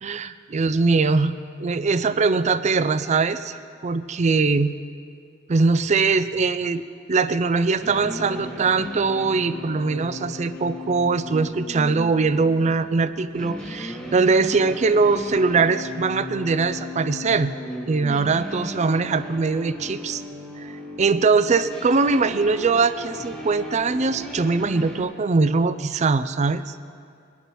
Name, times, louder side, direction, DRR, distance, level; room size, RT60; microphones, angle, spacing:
voice 1, 0.0-4.7 5.5-6.8 7.1-17.5 17.9-20.2 20.6-20.7 21.0-26.8, right 4 dB, 35° right, 13 dB, 0.4 m, -21 dB
sound 1, 7.8-25.0, left 1 dB, ahead, 1.7 m, -36 dB
22.0 x 11.0 x 3.1 m, 2.4 s
head